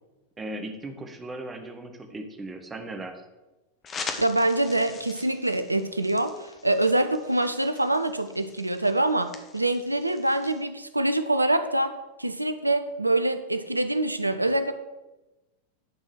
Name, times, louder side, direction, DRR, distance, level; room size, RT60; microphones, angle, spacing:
voice 1, 0.4-3.2, right 2 dB, 15° right, 5 dB, 1.2 m, -37 dB
sound 1, 3.8-10.6, left 5 dB, 25° left, 1.0 m, -42 dB
voice 2, 4.2-11.9 12.2-14.7, right 1 dB, 85° right, 10 dB, 0.6 m, -25 dB
11.0 x 4.5 x 6.3 m, 1.1 s
figure-of-eight pair, 90°, 0 cm